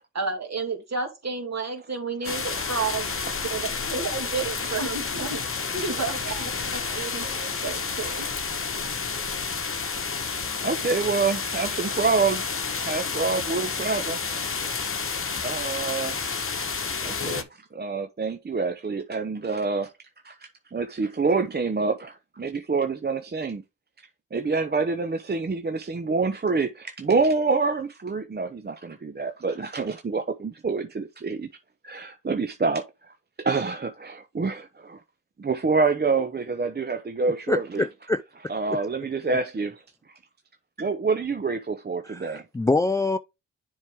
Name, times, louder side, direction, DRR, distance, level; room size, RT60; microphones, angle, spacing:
voice 1, 0.1-3.1 3.5-5.4 5.7-7.2 7.6-8.3, right 4 dB, 50° right, 2.6 m, -31 dB
sound 1, 2.2-17.4, left 5 dB, 35° left, 1.0 m, -30 dB
voice 2, 2.2-2.7 3.2-3.5 4.6-4.8 5.6-5.9 6.6-7.7 8.0-8.3 10.6-12.5 12.8-14.2 15.4-16.5 17.0-19.9 20.2-23.6 24.3-31.5 31.8-35.0 35.4-37.8 38.5-39.8 40.8-42.4, right 4 dB, 30° right, 0.7 m, -27 dB
voice 3, 37.5-38.2 38.7-38.8 42.0-43.2, left 2 dB, 10° left, 0.3 m, -25 dB
7.1 x 4.7 x 3.5 m
supercardioid pair, 45°, 35 cm